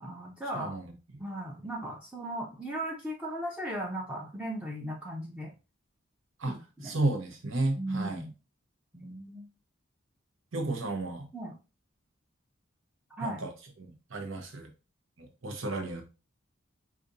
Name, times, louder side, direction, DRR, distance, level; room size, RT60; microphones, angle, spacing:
voice 1, 0.0-0.7 1.2-5.5 6.4-6.9 7.8-8.3 8.9-9.5 11.3-11.5 13.2-13.4, right 1 dB, 5° right, -2 dB, 0.5 m, -37 dB
voice 2, 0.5-1.2 6.4-6.6 6.8-8.2 10.5-11.3 13.2-13.5 13.8-14.7 15.2-16.0, right 2 dB, 75° right, 5 dB, 0.9 m, -33 dB
5.1 x 2.5 x 2.7 m, 0.31 s
head